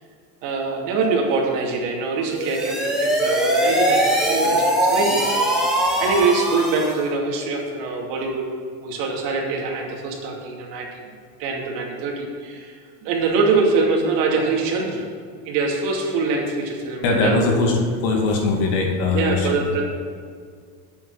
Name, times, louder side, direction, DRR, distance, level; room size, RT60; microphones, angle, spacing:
voice 1, 0.4-8.4 8.8-11.0 11.4-15.0 15.4-17.6 19.1-19.8, right 4 dB, 75° right, -1 dB, 2.8 m, -24 dB
sound 1, 2.3-7.1, right 1 dB, ahead, 1.5 m, -21 dB
voice 2, 17.0-19.6, left 3 dB, 55° left, 0 dB, 2.6 m, -21 dB
8.6 x 7.5 x 7.7 m, 2.1 s
supercardioid pair, 145°, 49 cm